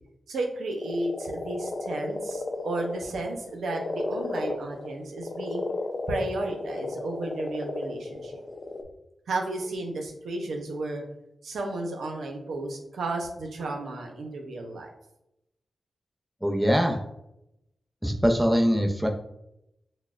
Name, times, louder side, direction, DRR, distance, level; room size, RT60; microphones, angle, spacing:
voice 1, 0.3-5.6 6.1-8.3 9.3-11.0 11.4-14.9, right 2 dB, 90° right, 2 dB, 0.6 m, -33 dB
sound 1, 0.8-3.2 3.6-8.8, left 2 dB, 55° left, 0.6 m, -33 dB
voice 2, 16.4-17.0 18.0-19.1, equal, 5° right, 0 dB, 0.5 m, -23 dB
5.9 x 2.1 x 2.4 m, 0.84 s
cardioid pair, 45°, 0 cm